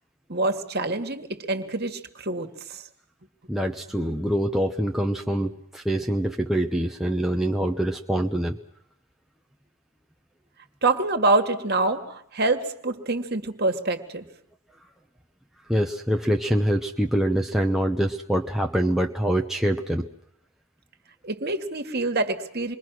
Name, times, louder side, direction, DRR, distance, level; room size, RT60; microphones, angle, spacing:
voice 1, 0.3-2.8 10.8-14.3 21.2-22.8, right 2 dB, 45° right, 7 dB, 1.9 m, -26 dB
voice 2, 3.5-8.6 15.7-20.1, right 1 dB, ahead, 2 dB, 0.9 m, -25 dB
27.5 x 22.0 x 6.2 m, 0.69 s
head